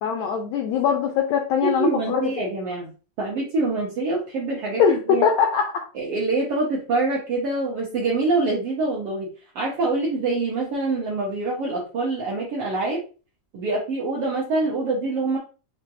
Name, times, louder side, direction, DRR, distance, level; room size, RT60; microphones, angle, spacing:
voice 1, 0.0-2.4 4.8-5.9, left 7 dB, 85° left, 3 dB, 1.5 m, -22 dB
voice 2, 1.8-2.9 3.2-5.2 5.9-9.3 9.5-13.0 13.5-15.4, right 3 dB, 75° right, -4 dB, 1.4 m, -25 dB
5.7 x 2.2 x 2.6 m, 0.35 s
omnidirectional pair, 3.7 m